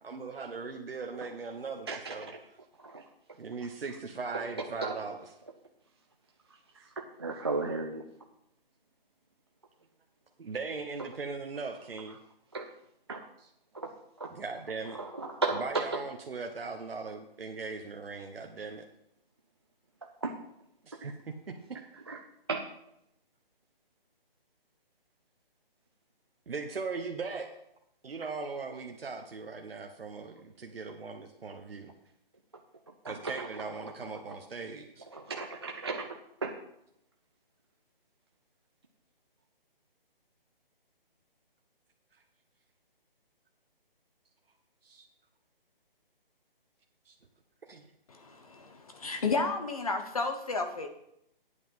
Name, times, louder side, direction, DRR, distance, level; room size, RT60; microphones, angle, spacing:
voice 1, 0.0-2.3 3.4-5.3 10.4-12.2 13.4-13.5 14.3-15.0 15.5-18.9 20.8-21.8 26.5-27.6 28.0-31.9 33.0-35.0 44.8-45.0 47.1-47.2 47.6-47.8, right 4 dB, 75° right, 3 dB, 1.2 m, -39 dB
voice 2, 7.2-8.0 12.5-12.6 13.1-13.2 14.2-14.3 15.0-15.1 15.4-15.8 20.2-20.3 22.1-22.2 22.5-22.6 33.0-33.1 35.1-36.1 36.4-36.5, right 3 dB, 30° right, 2 dB, 0.5 m, -33 dB
voice 3, 48.1-50.9, left 3 dB, 40° left, 6 dB, 1.0 m, -32 dB
9.4 x 8.4 x 5.4 m, 0.78 s
hypercardioid pair, 170°, 29 cm